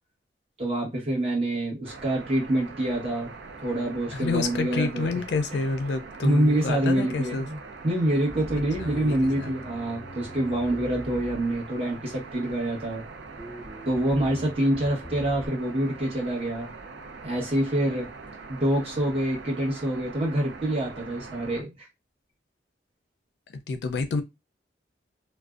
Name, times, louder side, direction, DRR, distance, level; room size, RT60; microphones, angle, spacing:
voice 1, 0.6-3.3 3.6-5.2 5.5-5.7 6.2-7.6 7.8-13.0 13.9-16.7 17.2-18.1 18.5-21.9, right 1 dB, 35° right, 1.0 m, -26 dB
sound 1, 1.8-21.6, right 4 dB, 85° right, 0.5 m, -43 dB
voice 2, 4.1-7.5 8.8-9.5 23.7-24.2, left 4 dB, 75° left, 0.4 m, -29 dB
Bass guitar, 8.3-11.9 12.5-13.0 13.4-15.5, equal, 5° right, 0.6 m, -42 dB
2.5 x 2.1 x 2.3 m
head